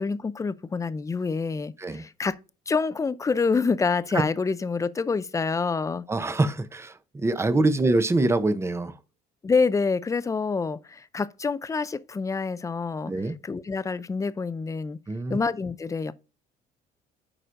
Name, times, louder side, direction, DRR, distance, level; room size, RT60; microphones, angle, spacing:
voice 1, 0.0-2.4 2.7-6.1 7.8-8.0 9.4-15.0 15.3-16.1, left 4 dB, 20° left, 0.5 m, -27 dB
voice 2, 6.1-8.9 13.1-13.4 15.1-15.4, right 2 dB, 15° right, 0.7 m, -24 dB
8.8 x 4.9 x 2.5 m
cardioid pair, 110°, 17 cm